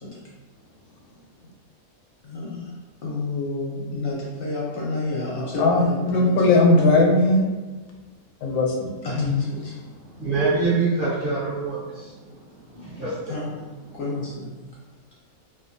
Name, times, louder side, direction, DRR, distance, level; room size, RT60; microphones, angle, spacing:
voice 1, 0.5-1.5 5.6-8.0 8.4-10.2, left 2 dB, 85° left, 1.1 m, -21 dB
voice 2, 2.2-2.7 3.0-6.3 9.0-9.2 9.5-9.6 13.3-13.6 13.9-14.6, left 2 dB, 55° left, 0.6 m, -30 dB
voice 3, 10.2-12.2 12.7-13.4, right 3 dB, 55° right, 0.6 m, -25 dB
2.6 x 2.3 x 2.6 m
omnidirectional pair, 1.5 m